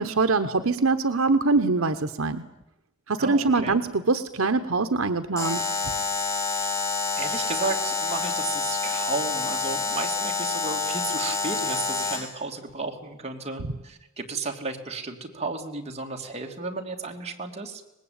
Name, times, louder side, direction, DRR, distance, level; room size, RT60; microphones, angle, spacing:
voice 1, 0.0-2.4 3.1-5.7, right 3 dB, 70° right, 9 dB, 1.0 m, -23 dB
voice 2, 3.2-3.8 6.5-6.8 7.2-17.8, right 3 dB, 30° right, 2 dB, 2.9 m, -33 dB
Alarm, 5.4-12.4, left 4 dB, 15° left, 2.5 m, -28 dB
24.5 x 20.0 x 8.8 m, 0.92 s
head